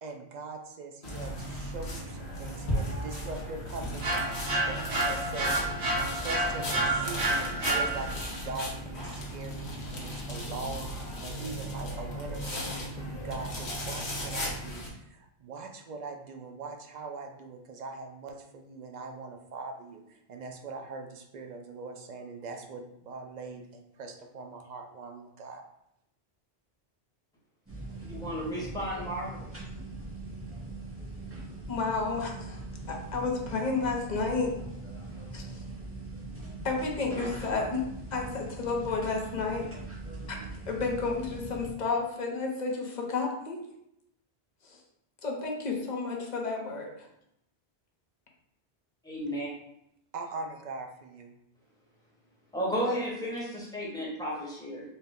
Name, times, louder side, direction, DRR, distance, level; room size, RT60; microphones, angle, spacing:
voice 1, 0.0-9.7 9.9-25.6 50.1-51.3, right 3 dB, 55° right, 4 dB, 0.5 m, -42 dB
sound 1, 1.0-14.9, equal, 85° left, 1.2 m, -36 dB
sound 2, 4.0-8.4, right 2 dB, 85° right, 1.1 m, -29 dB
sound 3, 27.7-41.7, right 2 dB, 15° right, 0.7 m, -41 dB
voice 2, 28.0-29.4 49.0-49.5 52.5-54.8, equal, 5° left, -5 dB, 1.0 m, -33 dB
voice 3, 31.7-32.6 32.9-34.5 35.3-35.6 36.6-37.8 38.1-39.7 40.3-40.4 40.7-43.6 44.7-44.8 45.2-46.9, left 4 dB, 50° left, 0 dB, 0.8 m, -31 dB
4.2 x 2.1 x 3.5 m, 0.79 s
omnidirectional pair, 1.1 m